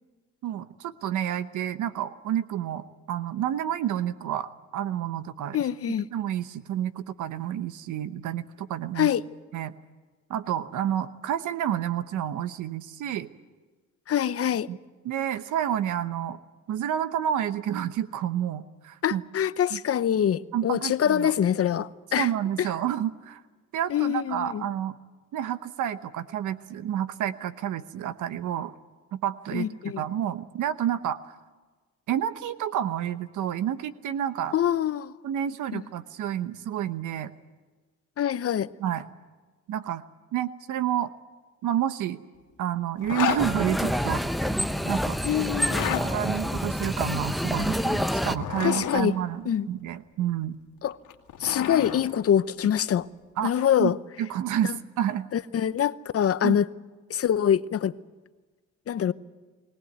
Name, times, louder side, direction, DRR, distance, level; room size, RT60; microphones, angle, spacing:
voice 1, 0.4-5.6 6.1-9.1 9.5-9.7 10.3-13.3 14.7-14.8 15.0-16.4 16.7-19.2 19.7-19.8 20.5-21.3 22.1-23.4 23.7-24.9 25.3-28.7 29.1-29.7 30.0-31.4 32.1-34.5 35.2-37.3 38.8-39.0 39.7-40.0 40.3-41.1 41.6-42.2 42.6-44.2 44.8-45.6 46.0-50.6 53.4-53.5 53.8-55.2 56.4-56.6, right 10 dB, 80° right, 1.0 m, -29 dB
voice 2, 5.5-6.1 9.0-9.2 14.1-14.7 19.0-22.3 22.6-22.7 23.9-24.7 29.5-30.0 34.5-35.1 35.7-35.8 38.2-38.7 45.2-46.0 48.6-49.1 49.4-49.7 50.8-50.9 51.4-53.1 53.4-54.0 54.6-54.8 55.3-56.7 57.1-57.9 58.9-59.1, left 9 dB, 50° left, 0.8 m, -25 dB
Zipper (clothing), 43.0-43.4 45.6-46.0 48.2-49.0 50.9-52.0, left 9 dB, 80° left, 2.1 m, -30 dB
sound 1, 43.4-48.4, equal, ahead, 0.8 m, -27 dB
22.5 x 18.0 x 9.3 m
cardioid pair, 90°, 30 cm